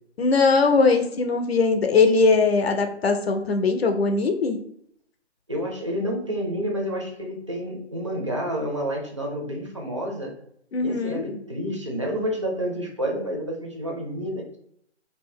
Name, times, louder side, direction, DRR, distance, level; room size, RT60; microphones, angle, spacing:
voice 1, 0.2-4.6 10.7-11.3, left 4 dB, 60° left, 6 dB, 0.6 m, -20 dB
voice 2, 5.5-10.3 10.8-14.6, equal, 30° right, 0 dB, 0.4 m, -29 dB
2.7 x 2.0 x 3.6 m, 0.70 s
figure-of-eight pair, 145°, 34 cm